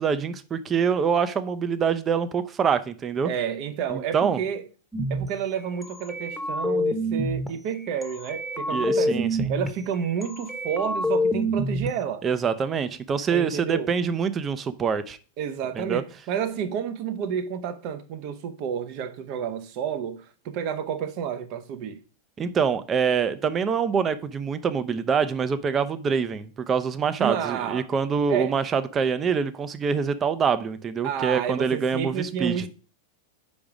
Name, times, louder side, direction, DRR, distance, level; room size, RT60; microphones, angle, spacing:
voice 1, 0.0-3.3 3.9-4.4 8.7-9.5 12.2-15.2 15.8-16.0 22.4-32.7, right 6 dB, 25° right, 0.7 m, -25 dB
voice 2, 3.2-4.6 5.1-12.2 13.3-13.9 15.4-22.0 27.2-27.9 28.3-28.6 31.0-32.7, right 8 dB, 50° right, 0.9 m, -30 dB
sound 1, 4.9-5.3 5.8-7.5 8.0-9.7 10.2-11.9, equal, ahead, 1.1 m, -27 dB
5.3 x 4.8 x 5.1 m
hypercardioid pair, 105°, 0 cm